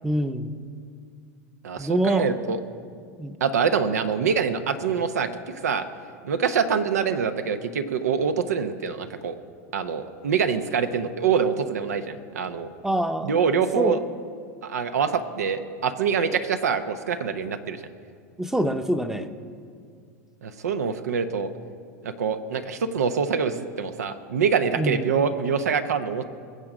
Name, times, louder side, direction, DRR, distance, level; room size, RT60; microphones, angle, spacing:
voice 1, 0.0-0.6 1.8-2.3 3.2-3.4 12.8-13.4 13.8-14.0 18.4-19.3 24.8-25.0, right 1 dB, 5° right, 8 dB, 0.7 m, -25 dB
voice 2, 1.6-2.6 3.4-5.3 5.6-5.9 6.2-9.3 9.7-12.7 13.2-14.0 14.6-17.8 20.4-21.5 22.0-26.2, right 6 dB, 90° right, 10 dB, 0.8 m, -25 dB
21.5 x 7.6 x 5.0 m, 2.2 s
hypercardioid pair, 105°, 8 cm